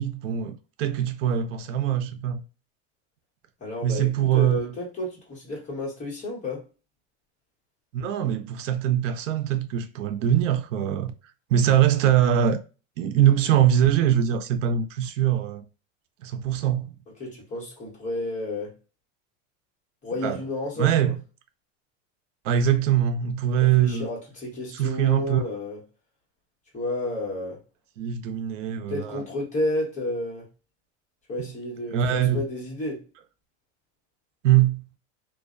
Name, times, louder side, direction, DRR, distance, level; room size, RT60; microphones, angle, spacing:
voice 1, 0.0-2.4 3.8-4.7 7.9-11.1 11.5-12.6 13.0-15.6 16.2-16.9 20.2-20.4 20.8-21.1 22.4-24.1 24.7-25.4 28.0-29.2 31.9-32.4 34.4-34.9, right 10 dB, 90° right, 0.6 m, -22 dB
voice 2, 3.6-6.6 17.2-18.7 20.0-21.1 23.6-25.8 26.7-27.6 28.9-30.5 31.3-33.0, left 1 dB, 20° left, 1.2 m, -31 dB
2.5 x 2.1 x 2.4 m
supercardioid pair, 135°, 36 cm